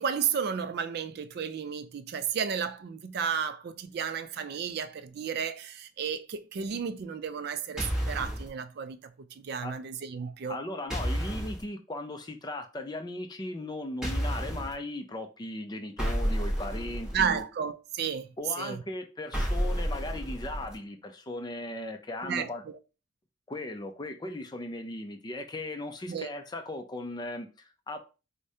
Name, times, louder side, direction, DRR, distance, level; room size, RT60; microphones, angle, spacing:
voice 1, 0.0-10.6 17.1-18.3 18.6-18.8 22.2-22.8 26.1-26.3, right 7 dB, 50° right, 0.3 m, -33 dB
sound 1, 7.8-8.5 10.9-11.6 14.0-14.7 16.0-17.4 19.3-20.7, equal, 5° right, 0.9 m, -30 dB
voice 2, 10.5-17.4 18.4-22.6 23.5-28.0, left 1 dB, 20° left, 0.4 m, -37 dB
4.8 x 2.1 x 2.7 m
head